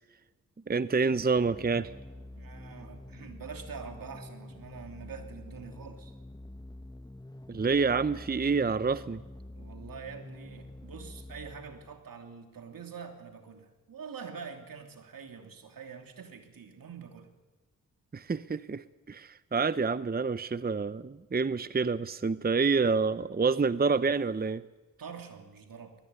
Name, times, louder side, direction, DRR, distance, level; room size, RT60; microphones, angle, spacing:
voice 1, 0.7-1.9 7.5-9.2 18.1-24.6, right 4 dB, 25° right, 15 dB, 0.8 m, -28 dB
sound 1, 1.3-12.1, left 1 dB, 10° left, 1.0 m, -47 dB
voice 2, 2.4-6.1 9.5-17.3 25.0-25.9, right 6 dB, 75° right, 5 dB, 3.0 m, -45 dB
21.0 x 19.0 x 9.7 m, 1.2 s
supercardioid pair, 40°, 35 cm